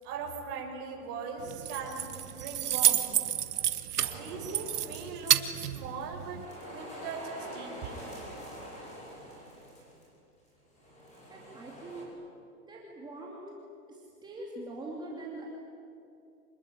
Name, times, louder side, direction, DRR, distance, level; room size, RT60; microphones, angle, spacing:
voice 1, 0.0-3.0 4.1-6.4 6.7-8.0, right 5 dB, 35° right, 0 dB, 6.3 m, -40 dB
Keys jangling, 1.4-6.5, right 10 dB, 85° right, 1.7 m, -30 dB
sound 1, 4.0-5.9 6.2-10.1 10.8-12.0, equal, 15° left, 6.1 m, -46 dB
voice 2, 11.3-12.1 12.7-13.5 13.9-15.5, right 2 dB, 10° right, -3 dB, 2.6 m, -43 dB
27.0 x 21.0 x 9.9 m, 2.6 s
hypercardioid pair, 160°, 45 cm